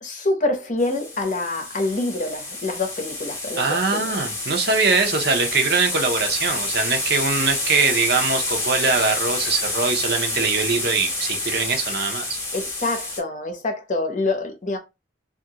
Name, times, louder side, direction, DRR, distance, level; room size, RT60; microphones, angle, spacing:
voice 1, 0.0-4.1 12.5-14.8, left 2 dB, 45° left, 0.7 m, -26 dB
sound 1, 0.8-13.2, left 2 dB, 20° left, 0.9 m, -28 dB
voice 2, 3.6-12.4, right 4 dB, 60° right, 0.7 m, -22 dB
2.7 x 2.5 x 2.8 m
head